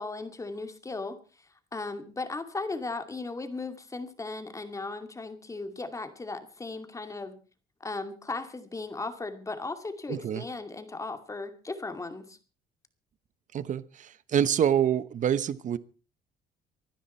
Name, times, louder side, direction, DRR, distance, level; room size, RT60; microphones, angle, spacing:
voice 1, 0.0-7.4 7.8-12.4, left 3 dB, 20° left, 2.4 m, -37 dB
voice 2, 10.1-10.4 13.5-15.8, right 9 dB, 50° right, 1.0 m, -26 dB
24.5 x 10.0 x 4.5 m
cardioid pair, 110°, 17 cm